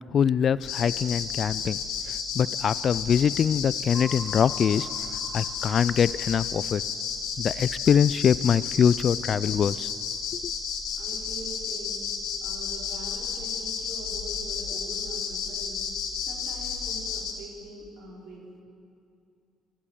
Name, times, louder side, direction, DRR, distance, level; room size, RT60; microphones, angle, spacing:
voice 1, 0.1-1.8 2.4-4.9 5.3-6.8 7.4-9.9 10.3-10.4, left 8 dB, 50° left, 19 dB, 0.3 m, -23 dB
sound 1, 0.6-17.3, left 6 dB, 85° left, 2.0 m, -32 dB
sound 2, 3.9-6.5, equal, 35° right, 2.8 m, -44 dB
voice 2, 11.0-12.1 12.4-15.9 16.2-18.4, right 2 dB, 65° right, -3 dB, 4.6 m, -43 dB
14.0 x 13.0 x 7.3 m, 2.5 s
supercardioid pair, 80°, 0 cm